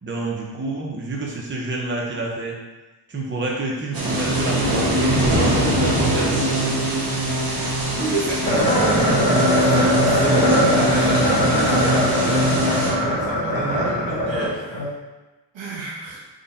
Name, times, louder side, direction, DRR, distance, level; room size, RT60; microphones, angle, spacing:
voice 1, 0.0-2.6 3.1-6.9, right 2 dB, 25° right, -3 dB, 0.7 m, -28 dB
sound 1, 3.9-12.9, right 1 dB, 50° right, 1.1 m, -22 dB
voice 2, 7.9-14.8 15.5-16.2, right 3 dB, 85° right, -3 dB, 1.0 m, -30 dB
sound 2, 8.4-14.9, equal, 65° left, 1.3 m, -20 dB
3.8 x 2.3 x 3.9 m, 1.1 s
wide cardioid pair, 115°, 44 cm